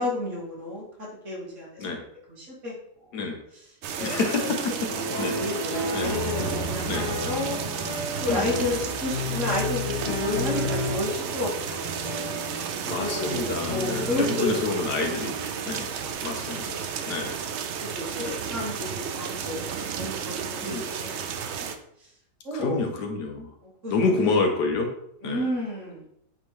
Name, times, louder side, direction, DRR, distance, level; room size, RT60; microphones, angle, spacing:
voice 1, 0.0-2.0 2.3-2.7 4.0-7.6 8.2-12.2 13.0-15.1 16.0-16.2 16.5-16.8 17.8-21.1 21.5-21.7 22.4-22.8 23.6-24.2 25.2-26.1, left 1 dB, 50° right, -4 dB, 2.0 m, -32 dB
sound 1, 3.8-21.8, right 7 dB, 75° right, 0.6 m, -33 dB
voice 2, 4.0-4.9 5.2-5.4 5.9-6.1 6.9-7.1 8.3-8.7 12.9-15.4 15.7-15.9 16.2-17.4 18.2-18.4 20.6-20.8 22.5-23.5 23.9-24.9 25.2-25.5, left 3 dB, 75° left, 3 dB, 1.5 m, -28 dB
sound 2, 4.9-14.7, left 2 dB, 40° left, 1.7 m, -32 dB
8.7 x 3.5 x 3.1 m, 0.74 s
omnidirectional pair, 1.8 m